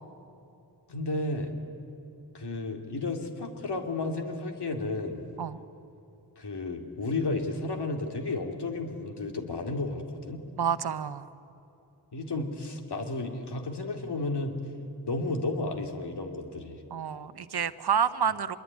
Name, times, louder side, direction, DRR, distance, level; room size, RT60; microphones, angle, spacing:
voice 1, 0.9-1.5 2.3-5.2 6.4-10.4 12.1-14.6 15.0-16.8, left 2 dB, 80° left, 3 dB, 2.7 m, -32 dB
voice 2, 10.6-11.3 16.9-18.6, right 7 dB, 70° right, 13 dB, 0.9 m, -29 dB
25.0 x 22.5 x 9.6 m, 2.8 s
wide cardioid pair, 90°, 40 cm